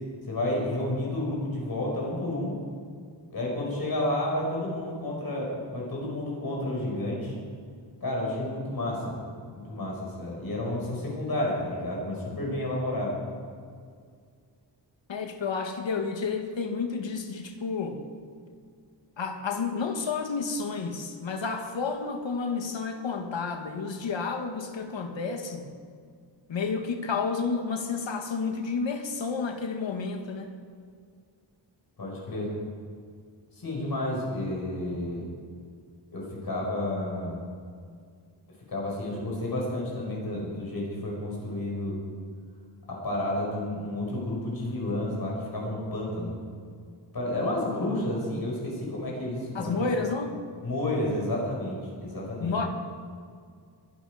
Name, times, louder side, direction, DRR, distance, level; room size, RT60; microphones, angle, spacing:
voice 1, 0.3-2.6 3.3-7.4 8.0-13.2 32.0-32.5 33.6-35.3 36.1-37.4 38.7-42.0 42.9-46.4 47.1-49.9 50.6-52.6, left 1 dB, 50° left, -3 dB, 5.2 m, -31 dB
voice 2, 15.1-18.0 19.2-25.7 26.5-30.5 49.5-50.3 52.4-52.7, left 4 dB, 75° left, 5 dB, 1.9 m, -30 dB
22.5 x 12.0 x 5.0 m, 2.1 s
wide cardioid pair, 150°, 45 cm